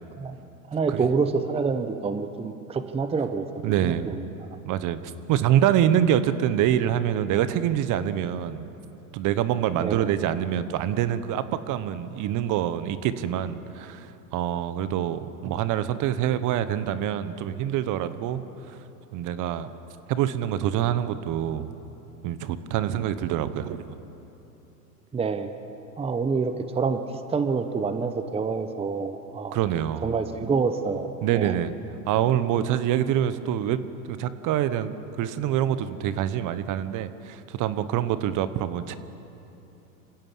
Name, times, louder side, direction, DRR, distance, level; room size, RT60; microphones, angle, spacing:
voice 1, 0.7-3.5 3.8-4.5 9.7-10.1 25.1-25.5 26.0-27.0 27.3-29.6 30.0-31.5, right 5 dB, 10° right, 9 dB, 0.9 m, -27 dB
voice 2, 3.6-4.2 4.6-5.0 5.3-8.7 9.1-18.8 19.1-19.7 20.1-21.7 22.2-23.9 29.5-30.1 31.2-31.7 32.1-33.8 34.1-39.0, right 11 dB, 40° right, 13 dB, 1.1 m, -25 dB
26.5 x 16.0 x 7.4 m, 2.9 s
hypercardioid pair, 105°, 48 cm